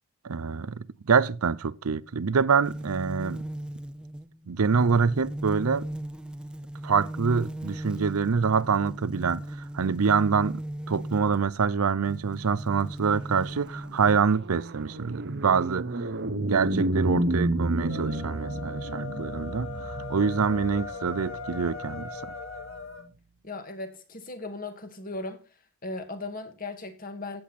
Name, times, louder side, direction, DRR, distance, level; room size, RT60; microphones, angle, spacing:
voice 1, 0.2-3.4 4.5-5.9 6.8-9.4 9.7-10.6 10.9-16.1 16.4-22.3, right 5 dB, 80° right, 0.6 m, -26 dB
sound 1, 2.6-11.5 12.0-14.2, right 1 dB, 5° right, 0.6 m, -37 dB
sound 2, 13.3-22.8, right 1 dB, 50° right, 0.9 m, -31 dB
sound 3, 17.8-23.1, left 3 dB, 60° left, 2.0 m, -39 dB
voice 2, 23.4-25.4 25.8-27.4, left 2 dB, 40° left, 2.0 m, -37 dB
15.5 x 7.9 x 4.2 m
head